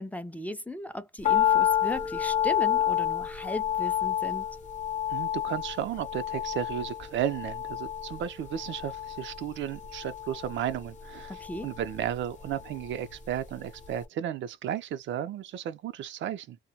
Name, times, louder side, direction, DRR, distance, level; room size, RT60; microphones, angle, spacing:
voice 1, 0.0-4.5 11.3-11.7, left 1 dB, 5° left, 0.4 m, -37 dB
sound 1, 1.2-13.5 13.8-13.9, left 10 dB, 40° left, 0.7 m, -30 dB
voice 2, 5.1-16.6, right 10 dB, 70° right, 0.5 m, -34 dB
2.2 x 2.1 x 2.6 m
cardioid pair, 90°, 20 cm